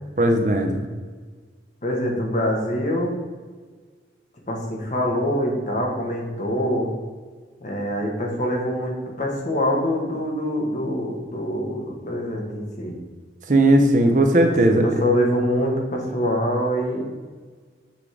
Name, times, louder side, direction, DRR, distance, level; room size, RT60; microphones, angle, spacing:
voice 1, 0.2-0.8 13.5-14.9, right 1 dB, 45° right, 5 dB, 0.6 m, -17 dB
voice 2, 1.8-3.1 4.5-6.9 7.6-13.0 14.7-17.0, equal, 40° left, 0 dB, 1.3 m, -24 dB
6.9 x 3.7 x 4.8 m, 1.5 s
head